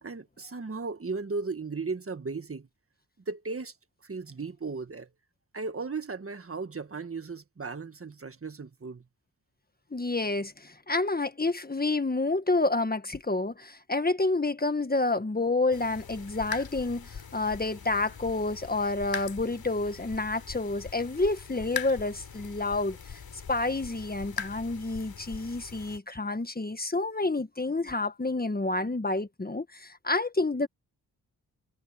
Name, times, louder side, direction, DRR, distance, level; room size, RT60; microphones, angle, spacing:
voice 1, 0.0-2.7 3.3-3.7 4.0-5.1 5.5-9.0, right 4 dB, 35° right, 1.6 m, -36 dB
voice 2, 9.9-23.2 23.5-30.7, left 2 dB, 25° left, 1.5 m, -29 dB
sound 1, 15.7-26.0, left 7 dB, 70° left, 3.9 m, -41 dB
cardioid pair, 65°, 37 cm